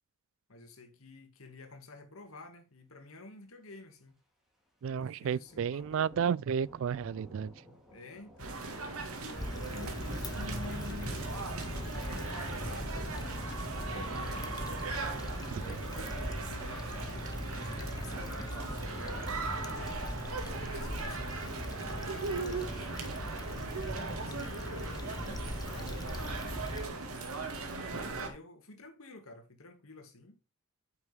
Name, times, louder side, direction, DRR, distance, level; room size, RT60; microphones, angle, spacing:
voice 1, 0.5-4.1 4.9-6.2 7.9-8.5 9.2-14.9 15.6-20.0 20.4-22.9 23.8-27.3 28.1-30.4, left 3 dB, 70° left, 2.2 m, -51 dB
Thunder / Rain, 4.8-10.3, left 1 dB, ahead, 3.0 m, -58 dB
voice 2, 4.8-7.5 15.5-15.8, right 7 dB, 65° right, 0.3 m, -32 dB
sound 1, 8.4-28.3, right 3 dB, 80° right, 2.0 m, -39 dB
Stream / Traffic noise roadway noise / Trickle dribble, 9.4-26.9, left 1 dB, 20° left, 0.9 m, -40 dB
9.2 x 6.0 x 3.5 m
head